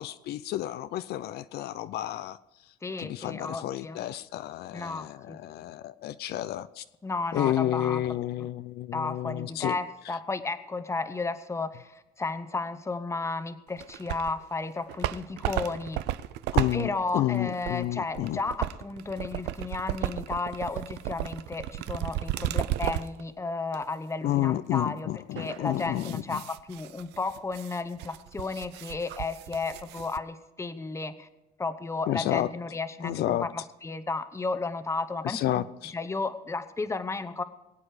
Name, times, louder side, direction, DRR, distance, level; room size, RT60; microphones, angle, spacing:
voice 1, 0.0-2.4 3.0-6.8 7.3-9.8 16.5-18.4 24.2-26.4 32.1-32.5 33.0-33.5 35.2-35.9, left 13 dB, 70° left, 13 dB, 0.5 m, -30 dB
voice 2, 2.8-4.0 4.7-5.4 7.0-8.0 8.9-16.0 16.7-31.3 31.6-35.6 35.9-37.4, left 3 dB, 15° left, 11 dB, 0.9 m, -33 dB
sound 1, 13.8-14.4 14.8-23.2 23.7-23.8 25.4-30.2, right 15 dB, 85° right, 0.5 m, -34 dB
22.0 x 8.6 x 4.9 m, 0.94 s
cardioid pair, 110°, 17 cm